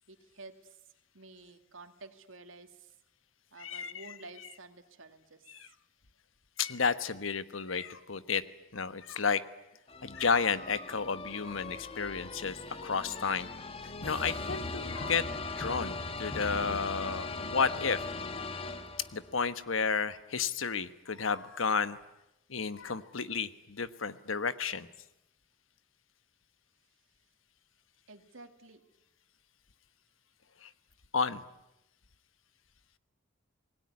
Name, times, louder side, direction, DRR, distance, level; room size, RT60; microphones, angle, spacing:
voice 1, 0.1-0.8 1.1-2.9 3.5-5.5 14.8-14.9 28.1-28.9, right 3 dB, 85° right, 7 dB, 2.4 m, -51 dB
voice 2, 3.6-3.9 5.5-5.7 6.6-8.4 8.7-9.4 10.0-13.5 14.0-15.2 15.6-18.0 19.1-22.0 22.5-24.9 30.6-30.7 31.1-31.4, left 5 dB, 85° left, 13 dB, 1.2 m, -32 dB
sound 1, 9.9-19.4, left 3 dB, 30° left, 1.3 m, -39 dB
27.0 x 20.5 x 9.7 m, 0.90 s
head